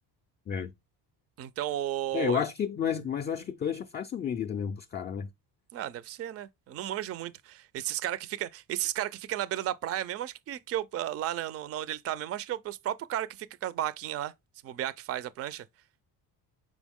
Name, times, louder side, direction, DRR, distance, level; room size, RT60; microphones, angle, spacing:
voice 1, 1.4-2.4 5.7-14.3 14.6-15.6, right 12 dB, 40° right, 0.4 m, -34 dB
voice 2, 2.1-5.3, left 7 dB, 25° left, 0.4 m, -31 dB
6.1 x 4.5 x 3.5 m
cardioid pair, 140°, 39 cm